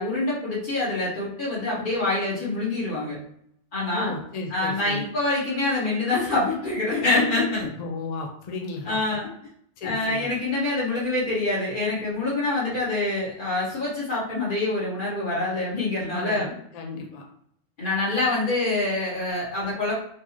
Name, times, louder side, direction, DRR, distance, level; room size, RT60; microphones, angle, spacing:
voice 1, 0.0-3.2 3.7-4.1 4.5-7.7 8.8-9.3 9.8-16.5 17.8-19.9, left 2 dB, 45° left, -8 dB, 1.7 m, -25 dB
voice 2, 3.9-5.1 7.8-9.2 9.8-10.3 16.1-17.2, left 3 dB, 60° left, 1 dB, 0.4 m, -34 dB
4.3 x 2.4 x 2.8 m, 0.68 s
omnidirectional pair, 1.2 m